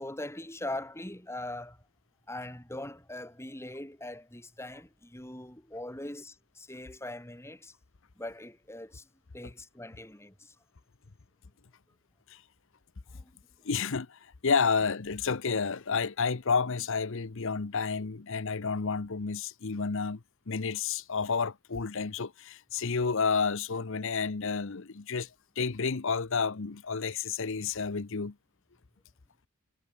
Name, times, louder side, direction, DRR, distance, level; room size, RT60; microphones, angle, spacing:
voice 1, 0.0-1.8 2.3-7.7 8.2-9.1 9.3-10.5 13.1-13.3, left 1 dB, 10° left, 3.5 m, -41 dB
voice 2, 13.6-25.3 25.6-28.3, left 5 dB, 60° left, 0.8 m, -30 dB
head